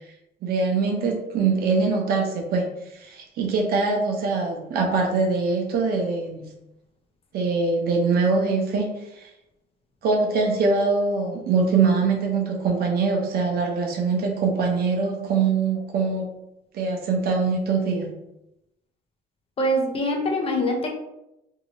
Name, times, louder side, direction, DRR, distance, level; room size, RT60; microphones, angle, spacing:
voice 1, 0.4-2.7 2.9-6.5 7.3-8.9 9.2-9.3 10.0-16.3 16.7-18.1, right 4 dB, 65° right, 1 dB, 0.8 m, -23 dB
voice 2, 19.6-20.9, equal, 35° left, 1 dB, 0.7 m, -24 dB
2.8 x 2.7 x 3.0 m, 0.87 s
cardioid pair, 110°, 17 cm